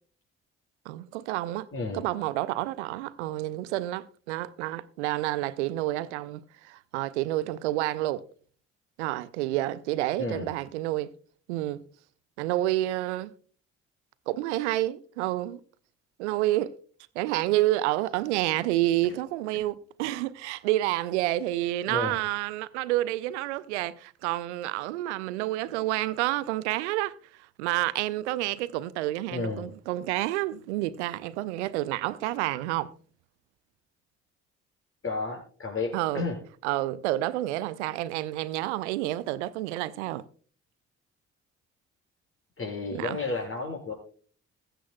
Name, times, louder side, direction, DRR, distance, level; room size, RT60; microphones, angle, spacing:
voice 1, 0.9-1.7 1.9-8.2 9.0-11.1 11.5-11.8 12.4-13.3 14.3-15.6 16.2-16.7 17.1-27.1 27.6-32.9 35.9-36.3 36.6-40.2 42.9-43.2, right 16 dB, 75° right, 0.6 m, -29 dB
voice 2, 1.7-2.0 10.2-10.5 19.5-19.6 21.9-22.2 29.3-29.7 35.0-36.4 42.6-43.9, left 3 dB, 35° left, 5.7 m, -32 dB
21.0 x 7.8 x 2.2 m
figure-of-eight pair, 40°, 35 cm